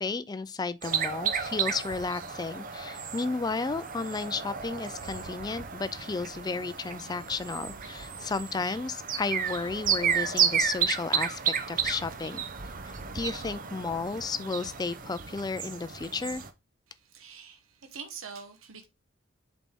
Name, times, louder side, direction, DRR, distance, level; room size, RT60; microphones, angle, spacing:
voice 1, 0.0-11.4 11.7-12.4 13.1-16.4, left 4 dB, 20° left, 0.3 m, -33 dB
sound 1, 0.8-16.5, right 7 dB, 40° right, 0.7 m, -32 dB
voice 2, 17.1-18.9, right 6 dB, 90° right, 1.0 m, -44 dB
7.3 x 4.1 x 3.6 m
head